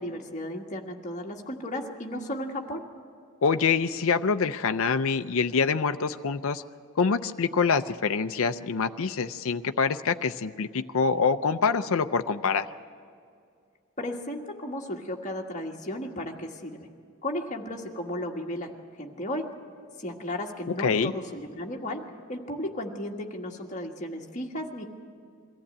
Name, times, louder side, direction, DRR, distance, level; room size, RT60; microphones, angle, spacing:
voice 1, 0.0-2.8 14.0-16.8 17.2-18.7 19.0-19.5 20.0-22.0 22.3-24.8, left 1 dB, 35° left, 1 dB, 1.6 m, -34 dB
voice 2, 3.4-6.6 7.0-12.7 20.8-21.1, left 5 dB, 65° left, 8 dB, 0.5 m, -25 dB
22.5 x 14.5 x 8.6 m, 2.3 s
head